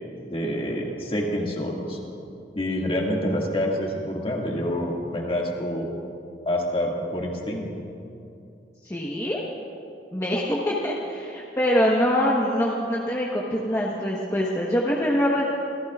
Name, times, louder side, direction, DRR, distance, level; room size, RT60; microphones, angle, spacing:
voice 1, 0.3-2.0 2.5-5.9 6.5-7.9, equal, 30° left, -2 dB, 2.0 m, -27 dB
voice 2, 8.8-9.4 10.1-15.4, equal, 15° left, -4 dB, 1.1 m, -24 dB
27.0 x 15.0 x 2.4 m, 2.6 s
head